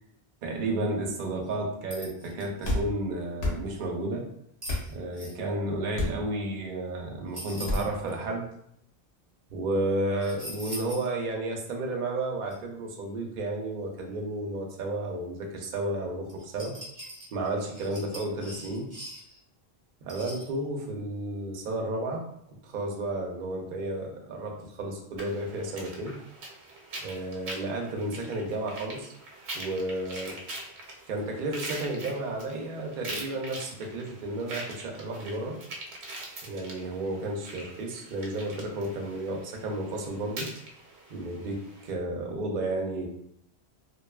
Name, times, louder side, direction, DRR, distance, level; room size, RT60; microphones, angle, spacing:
voice 1, 0.4-4.3 4.9-8.5 9.5-16.8 17.3-18.9 20.0-22.3 22.6-26.2 27.0-29.1 29.5-30.4 31.1-35.6 36.4-40.5 41.1-43.1, right 2 dB, 60° right, 1 dB, 0.6 m, -32 dB
sound 1, 1.4-1.5 1.9-2.7 3.8-3.9 4.6-5.3 7.3-8.2 10.2-11.1 11.5-11.6 12.5-12.6 16.3-19.4 20.1-20.5, equal, 20° right, 0.6 m, -42 dB
sound 2, 2.6-2.9 3.4-3.6 4.7-4.9 5.9-6.2 7.7-7.9, left 1 dB, 75° left, 0.9 m, -28 dB
sound 3, 25.2-41.9, right 2 dB, 80° right, 0.9 m, -43 dB
2.5 x 2.2 x 2.2 m, 0.72 s
omnidirectional pair, 1.1 m